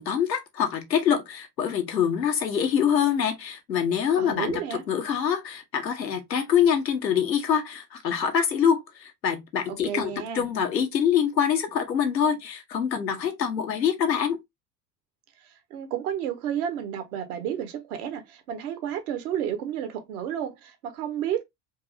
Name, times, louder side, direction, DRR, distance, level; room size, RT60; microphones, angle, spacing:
voice 1, 0.0-4.6 4.9-14.4, left 8 dB, 80° left, 0.9 m, -25 dB
voice 2, 4.2-4.8 9.7-10.5 15.7-21.4, right 9 dB, 60° right, 1.1 m, -31 dB
4.5 x 2.7 x 2.4 m
figure-of-eight pair, 60°, 49 cm